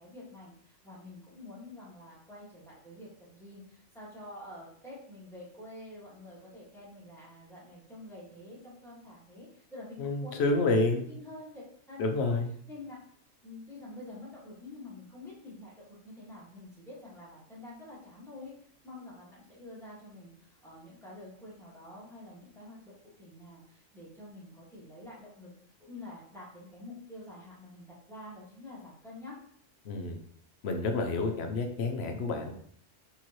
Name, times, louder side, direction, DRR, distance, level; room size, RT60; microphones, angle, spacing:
voice 1, 0.0-10.4 10.7-10.8 11.0-11.6 11.9-12.4 12.7-13.0 13.4-25.5 25.8-29.4, left 2 dB, ahead, -8 dB, 1.7 m, -48 dB
voice 2, 10.0-11.0 12.0-12.5 29.8-30.2 30.6-32.5, left 3 dB, 60° left, 4 dB, 0.9 m, -29 dB
4.3 x 3.7 x 3.0 m, 0.62 s
omnidirectional pair, 1.3 m